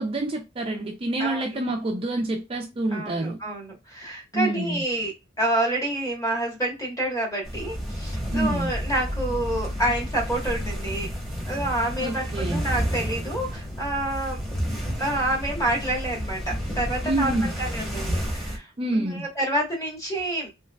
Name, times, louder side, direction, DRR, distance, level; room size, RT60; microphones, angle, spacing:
voice 1, 0.0-3.4 4.3-4.8 8.3-8.7 12.0-12.6 17.0-17.5 18.8-19.3, right 2 dB, 25° right, 0.4 m, -27 dB
voice 2, 1.2-1.6 2.9-5.1 5.4-11.1 11.5-14.4 15.0-20.5, right 1 dB, 15° left, 1.3 m, -28 dB
sound 1, 7.4-18.6, equal, ahead, 1.1 m, -31 dB
3.3 x 3.1 x 2.3 m
head